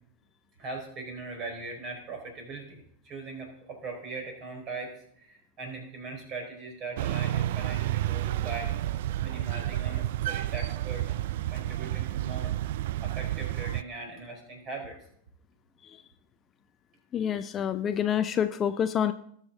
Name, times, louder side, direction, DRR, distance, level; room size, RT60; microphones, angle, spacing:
voice 1, 0.6-8.9 9.2-11.2 11.5-12.5 13.0-15.0, right 3 dB, 35° right, 3 dB, 4.3 m, -40 dB
sound 1, 7.0-13.8, right 14 dB, 55° right, 0.3 m, -30 dB
voice 2, 17.1-19.1, left 9 dB, 25° left, 11 dB, 0.5 m, -27 dB
19.0 x 6.5 x 3.7 m, 0.68 s
figure-of-eight pair, 90°, 0 cm